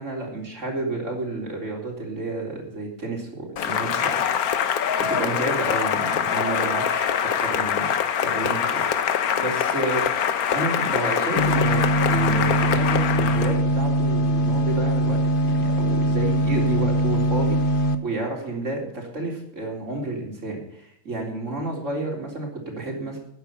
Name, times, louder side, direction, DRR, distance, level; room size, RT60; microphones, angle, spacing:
voice 1, 0.0-4.7 5.1-7.9 8.2-10.0 10.5-23.2, right 2 dB, 55° right, 0 dB, 4.1 m, -31 dB
Cheering / Applause, 3.6-13.6, left 8 dB, 85° left, 1.4 m, -24 dB
sound 1, 11.4-17.9, right 1 dB, 40° left, 1.0 m, -22 dB
13.5 x 9.8 x 5.8 m, 0.72 s
omnidirectional pair, 1.5 m